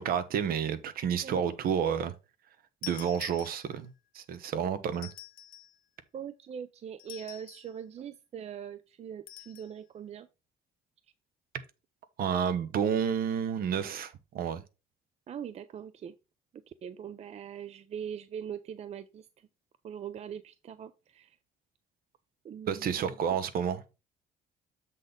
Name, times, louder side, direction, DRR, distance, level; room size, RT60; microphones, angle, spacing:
voice 1, 0.0-2.1 2.8-5.1 12.2-14.6 22.7-23.8, right 8 dB, 60° right, 1.0 m, -30 dB
sound 1, 2.8-4.0 4.9-5.8 7.0-7.8 9.3-9.7, left 13 dB, 55° left, 0.8 m, -46 dB
voice 2, 6.1-10.3 15.3-16.2 16.7-19.5 19.8-21.4 22.4-23.4, right 8 dB, 40° right, 0.5 m, -42 dB
7.5 x 4.1 x 5.1 m
cardioid pair, 110°, 17 cm